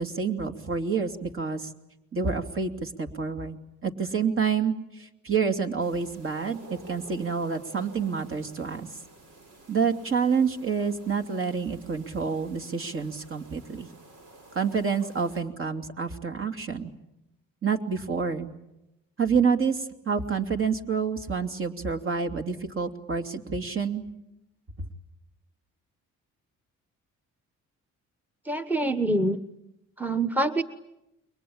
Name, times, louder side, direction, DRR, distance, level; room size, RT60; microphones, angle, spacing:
voice 1, 0.0-1.7 2.1-8.9 9.7-13.9 14.5-16.9 17.6-18.5 19.2-24.1 24.8-24.9, right 5 dB, 45° right, 6 dB, 2.9 m, -28 dB
sound 1, 5.8-15.4, right 2 dB, 85° right, 6.6 m, -51 dB
voice 2, 28.4-29.4 30.0-30.6, right 1 dB, 5° right, 9 dB, 1.2 m, -25 dB
29.5 x 23.0 x 8.8 m, 0.91 s
cardioid pair, 90°, 30 cm